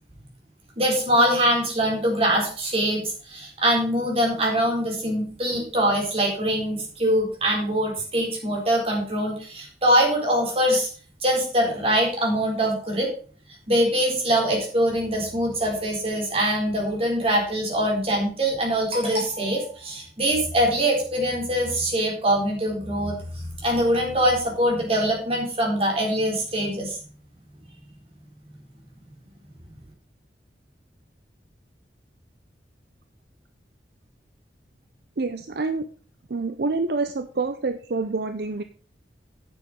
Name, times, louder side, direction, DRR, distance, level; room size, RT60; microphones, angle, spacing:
voice 1, 0.8-10.9 11.2-13.1 13.7-27.0, equal, 35° right, -1 dB, 4.0 m, -23 dB
voice 2, 35.2-35.9 36.3-38.6, right 3 dB, 60° right, 9 dB, 0.6 m, -27 dB
9.5 x 7.0 x 5.2 m, 0.40 s
head